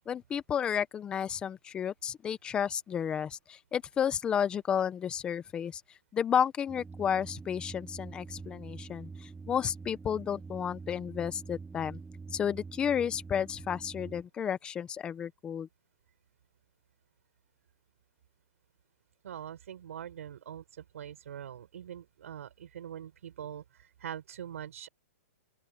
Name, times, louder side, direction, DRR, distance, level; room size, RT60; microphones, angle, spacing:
voice 1, 0.1-5.8 6.1-12.0 12.3-15.7, left 8 dB, 10° left, 0.7 m, -32 dB
sound 1, 6.7-14.2, right 4 dB, 5° right, 1.1 m, -46 dB
voice 2, 19.2-24.9, right 9 dB, 65° right, 6.0 m, -43 dB
open air
hypercardioid pair, 165°, 8 cm